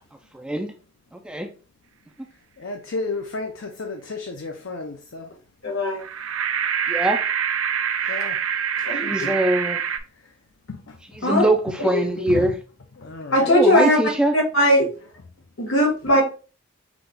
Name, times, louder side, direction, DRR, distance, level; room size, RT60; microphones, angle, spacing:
voice 1, 0.3-0.7 1.1-1.5 6.9-7.2 8.9-9.8 11.1-12.6 13.5-14.4, right 1 dB, 5° right, 0.4 m, -23 dB
voice 2, 2.6-5.3 8.1-8.4 8.8-8.9 10.2-10.3 10.7-11.2 12.3-12.4 13.0-13.5, left 3 dB, 65° left, 0.6 m, -33 dB
voice 3, 5.6-6.0 8.8-9.3 11.2-11.5 11.8-12.0 13.3-14.0 14.3-14.8 15.6-16.2, equal, 85° left, 2.2 m, -19 dB
sound 1, 6.0-10.0, right 8 dB, 85° right, 0.6 m, -25 dB
6.0 x 2.4 x 3.3 m
head